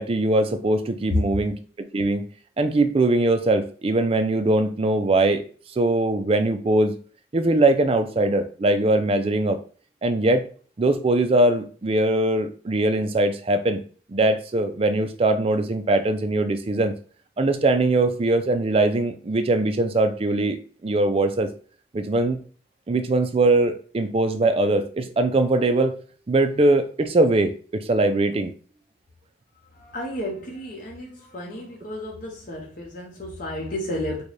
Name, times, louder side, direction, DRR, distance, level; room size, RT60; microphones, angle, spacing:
voice 1, 0.0-1.6 1.9-2.2 2.6-5.4 5.8-7.0 7.3-9.6 10.0-10.4 10.8-13.8 14.1-16.9 17.4-20.6 20.8-21.5 21.9-22.4 22.9-26.0 26.3-28.5, right 2 dB, 30° right, 0.4 m, -21 dB
voice 2, 29.7-34.2, left 1 dB, 45° left, 0.7 m, -33 dB
3.9 x 2.2 x 3.2 m
head